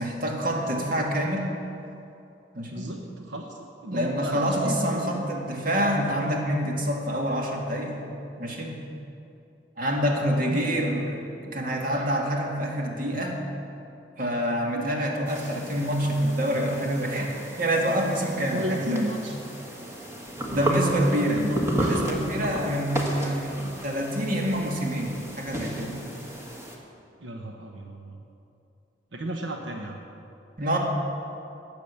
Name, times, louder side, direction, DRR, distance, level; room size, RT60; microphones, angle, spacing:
voice 1, 0.0-1.5 2.5-2.9 3.9-8.0 8.4-8.8 9.8-11.2 11.4-13.4 14.2-19.3 20.5-26.0 30.6-30.8, equal, 50° right, 0 dB, 2.0 m, -27 dB
voice 2, 2.7-5.3 10.4-10.6 14.7-14.9 18.5-19.4 21.1-21.9 27.2-28.2 29.1-30.0, right 1 dB, 90° right, 2 dB, 1.0 m, -33 dB
sound 1, 15.3-26.8, right 1 dB, 15° right, 1.6 m, -33 dB
18.5 x 7.1 x 7.0 m, 2.7 s
head